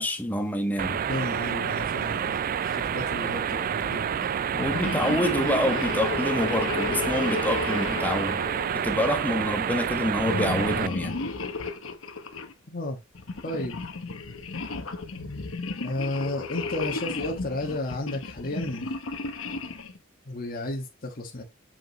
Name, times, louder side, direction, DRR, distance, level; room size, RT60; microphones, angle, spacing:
voice 1, 0.0-1.0 4.6-8.4 8.7-11.1, left 1 dB, 10° left, 1.4 m, -27 dB
sound 1, 0.8-10.9, right 8 dB, 45° right, 0.3 m, -28 dB
voice 2, 1.1-4.4 12.7-13.0 13.4-13.8 15.8-18.9 20.3-21.4, left 1 dB, 45° left, 1.4 m, -33 dB
sound 2, 4.5-9.4 10.2-12.5 13.2-20.0, left 3 dB, 85° left, 1.2 m, -33 dB
7.3 x 5.4 x 3.1 m
head